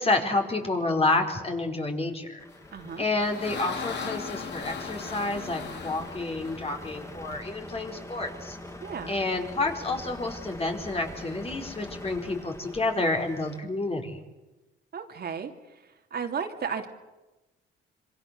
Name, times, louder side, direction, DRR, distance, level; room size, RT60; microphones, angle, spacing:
voice 1, 0.0-2.4 3.0-8.6 9.1-14.2, left 2 dB, 30° left, 3 dB, 4.8 m, -29 dB
Truck, 2.4-13.6, left 1 dB, 15° left, 3.0 m, -43 dB
sound 1, 2.7-7.4, left 5 dB, 60° left, 3.8 m, -38 dB
voice 2, 2.7-3.0 8.8-9.1 14.9-15.5 16.1-16.9, right 6 dB, 55° right, 4 dB, 2.8 m, -33 dB
27.0 x 24.5 x 6.9 m, 1.1 s
cardioid pair, 90°, 20 cm